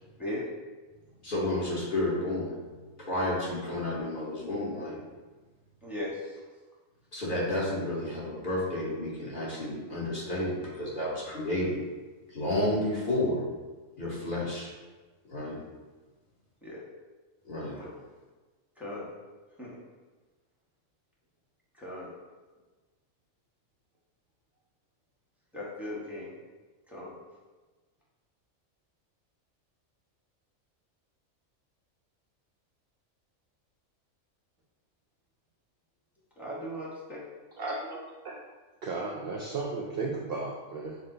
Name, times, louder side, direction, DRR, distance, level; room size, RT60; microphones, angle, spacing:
voice 1, 1.2-2.5 3.0-5.0 7.1-11.8 12.3-13.4 14.0-14.7 15.3-15.6 17.4-17.8, left 1 dB, 40° left, -7 dB, 1.2 m, -31 dB
voice 2, 5.8-6.4 16.6-16.8 17.8-17.9 18.8-19.1 19.6-19.7 21.7-22.1 25.5-26.3 26.9-27.1 36.4-37.2, left 1 dB, ahead, -7 dB, 0.8 m, -38 dB
voice 3, 37.6-38.4 38.8-41.0, right 3 dB, 65° right, -1 dB, 0.6 m, -35 dB
6.4 x 2.1 x 3.8 m, 1.3 s
omnidirectional pair, 1.4 m